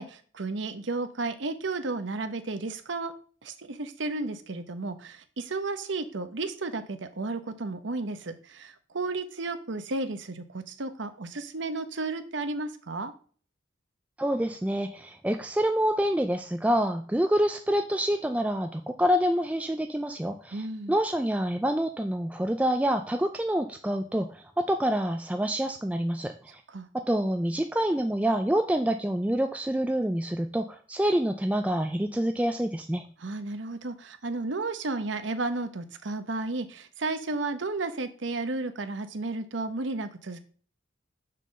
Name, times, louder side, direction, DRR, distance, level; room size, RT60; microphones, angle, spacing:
voice 1, 0.0-3.1 3.4-13.1 20.5-21.0 26.7-26.9 33.2-40.4, right 3 dB, 75° right, 10 dB, 0.8 m, -33 dB
voice 2, 14.2-26.6 26.9-33.0, equal, 5° right, 5 dB, 0.3 m, -27 dB
6.6 x 3.9 x 6.4 m, 0.43 s
head